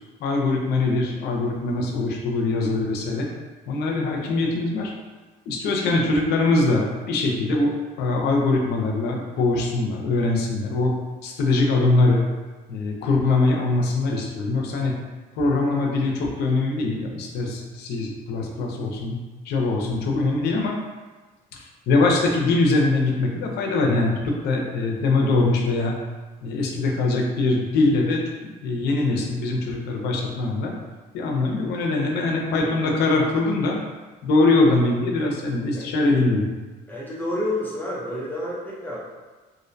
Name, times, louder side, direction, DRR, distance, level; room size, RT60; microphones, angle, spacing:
voice 1, 0.2-3.3 3.7-4.9 5.5-11.0 11.2-12.2 12.7-15.0 15.4-19.2 19.4-20.8 21.5-26.0 26.4-30.8 31.1-33.8 34.2-36.5, left 2 dB, 75° left, 0 dB, 0.5 m, -22 dB
voice 2, 36.9-39.0, left 1 dB, 10° left, -6 dB, 0.5 m, -29 dB
2.5 x 2.1 x 2.5 m, 1.2 s
cardioid pair, 110°, 17 cm